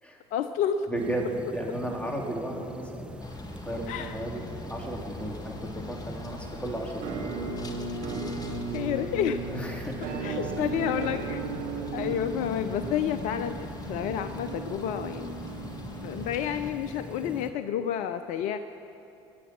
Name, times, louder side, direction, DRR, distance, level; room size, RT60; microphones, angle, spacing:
voice 1, 0.3-0.9 3.9-4.2 8.7-9.4 10.2-11.4 11.9-13.6 13.9-15.4 16.0-18.6, left 9 dB, 60° left, 10 dB, 0.6 m, -30 dB
voice 2, 0.9-3.2 3.6-7.3 9.5-10.6, right 1 dB, 10° left, 0 dB, 3.3 m, -35 dB
sound 1, 0.9-17.5, right 1 dB, 5° right, 1.1 m, -42 dB
sound 2, 3.2-16.7, left 3 dB, 25° left, 1.8 m, -43 dB
Musical instrument, 7.0-16.8, right 4 dB, 60° right, 2.4 m, -36 dB
22.5 x 10.5 x 6.1 m, 2.8 s
hypercardioid pair, 65°, 15 cm